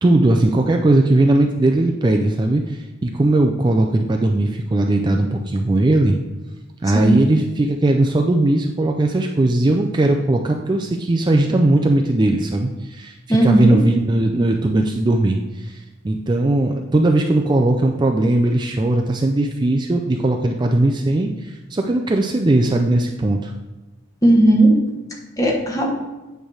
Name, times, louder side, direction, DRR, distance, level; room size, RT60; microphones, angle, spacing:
voice 1, 0.0-6.2 6.8-23.5, right 2 dB, 20° right, 3 dB, 0.4 m, -18 dB
voice 2, 13.3-13.8 24.2-24.8 25.4-26.0, right 1 dB, 15° left, 0 dB, 1.1 m, -15 dB
8.6 x 3.4 x 6.2 m, 1.1 s
head